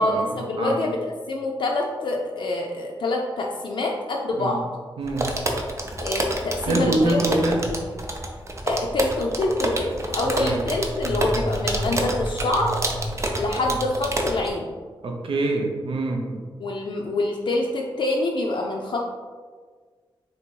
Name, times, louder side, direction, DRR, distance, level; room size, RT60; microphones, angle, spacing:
voice 1, 0.0-4.6 6.0-7.2 8.7-12.7 13.4-14.7 16.6-19.1, left 2 dB, 65° left, 0 dB, 0.4 m, -26 dB
sound 1, 5.0-14.5, right 1 dB, 30° right, 0.5 m, -28 dB
voice 2, 5.0-5.3 6.7-7.6 10.2-10.6 15.0-16.4, right 2 dB, 85° right, 1 dB, 0.6 m, -25 dB
3.3 x 2.7 x 4.4 m, 1.5 s
wide cardioid pair, 125°, 9 cm